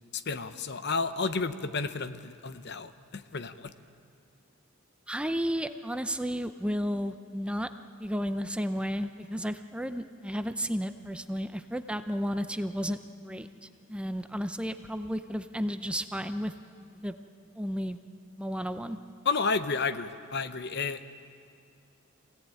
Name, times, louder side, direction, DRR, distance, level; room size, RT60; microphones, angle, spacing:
voice 1, 0.1-3.7 19.2-21.2, left 4 dB, 55° left, 11 dB, 0.9 m, -31 dB
voice 2, 5.1-7.7 8.0-13.0 13.2-16.5 17.0-17.1 17.6-18.0 18.4-19.0, equal, 5° right, 8 dB, 0.6 m, -32 dB
25.0 x 17.0 x 9.1 m, 2.4 s
head